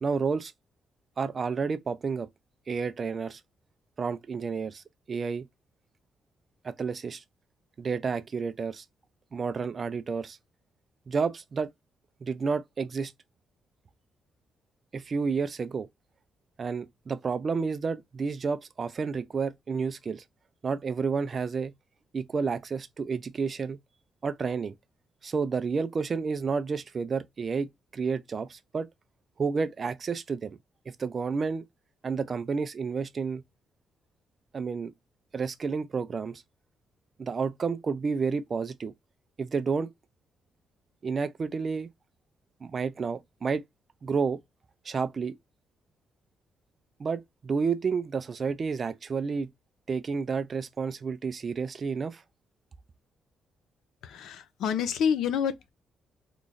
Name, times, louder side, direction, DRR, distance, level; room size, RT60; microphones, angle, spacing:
voice 1, 0.0-0.5 1.2-2.3 2.7-3.4 4.0-5.5 6.6-7.2 7.8-8.8 9.3-10.4 11.1-11.7 12.2-13.1 14.9-15.9 16.6-20.2 20.6-21.7 22.1-23.8 24.2-24.7 25.2-28.9 29.4-30.5 31.0-31.6 32.0-33.4 34.5-34.9 35.3-36.4 37.2-38.9 39.4-39.9 41.0-41.9 42.6-43.6 44.0-44.4 44.9-45.3 47.0-49.5 49.9-52.2, right 5 dB, 35° right, 0.4 m, -30 dB
voice 2, 54.0-55.7, left 7 dB, 85° left, 0.6 m, -28 dB
3.0 x 2.4 x 3.9 m
cardioid pair, 125°, 0 cm